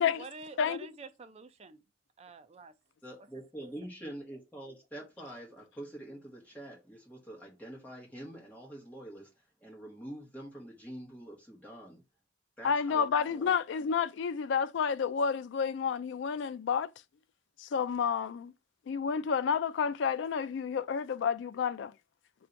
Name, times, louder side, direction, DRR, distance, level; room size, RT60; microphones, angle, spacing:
voice 1, 0.0-1.8 2.2-2.7 3.6-3.7, right 3 dB, 30° right, 0.4 m, -48 dB
voice 2, 3.0-9.3 9.6-12.0 12.6-13.5, right 1 dB, 10° left, 1.3 m, -46 dB
voice 3, 12.6-16.9 17.6-18.5 18.9-21.9, left 6 dB, 65° left, 0.3 m, -30 dB
3.5 x 2.7 x 4.4 m
head